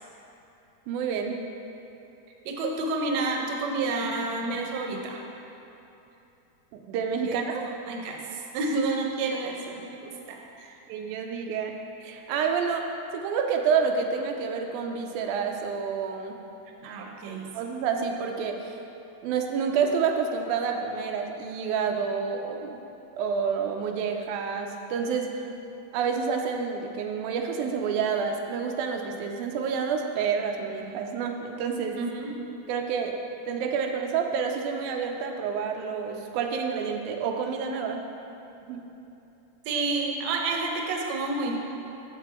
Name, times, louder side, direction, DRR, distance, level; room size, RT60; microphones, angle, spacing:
voice 1, 0.9-1.4 6.7-7.6 10.9-11.7 12.0-12.8 13.1-16.4 17.5-18.8 19.2-22.8 23.2-25.3 25.9-32.0 32.7-33.2 33.5-38.0 38.6-38.8, right 6 dB, 90° right, 3 dB, 2.1 m, -28 dB
voice 2, 2.4-5.2 7.2-10.8 16.8-17.5 32.0-32.5 39.6-41.6, right 3 dB, 75° right, 1 dB, 1.7 m, -30 dB
6.8 x 6.0 x 4.3 m, 2.9 s
omnidirectional pair, 3.4 m